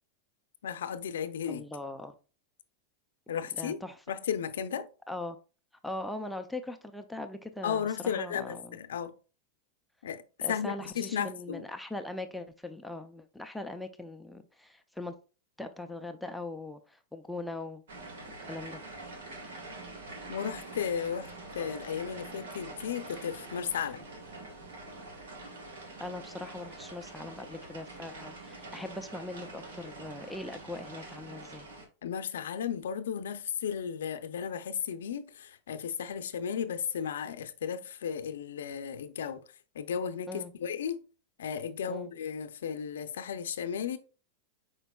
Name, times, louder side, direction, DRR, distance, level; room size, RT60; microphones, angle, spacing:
voice 1, 0.6-1.6 3.3-3.8 4.1-4.9 7.6-9.1 10.0-10.2 10.5-11.6 20.3-24.1 32.0-39.4 39.7-41.0 41.4-44.0, left 8 dB, 90° left, 0.5 m, -34 dB
voice 2, 1.4-2.1 3.5-4.0 5.1-5.4 5.8-8.8 10.4-15.1 15.6-17.8 18.4-18.8 26.0-31.7 40.3-40.5 41.9-42.1, left 2 dB, ahead, 0.4 m, -40 dB
sound 1, 17.9-31.8, right 2 dB, 85° right, 1.4 m, -45 dB
5.0 x 4.5 x 2.3 m
supercardioid pair, 135°, 0 cm